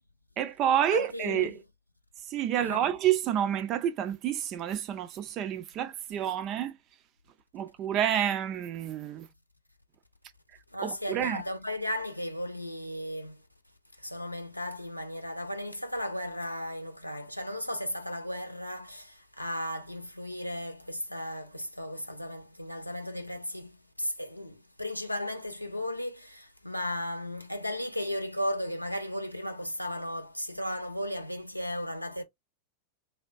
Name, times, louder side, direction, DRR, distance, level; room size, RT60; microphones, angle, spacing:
voice 1, 0.4-1.5 2.3-6.8 7.5-9.3 10.8-11.4, right 10 dB, 35° right, 0.5 m, -29 dB
voice 2, 0.9-1.6 2.6-2.8 10.7-13.4 14.0-32.2, left 1 dB, 90° left, 0.6 m, -35 dB
3.4 x 2.2 x 2.5 m
figure-of-eight pair, 90°, 0 cm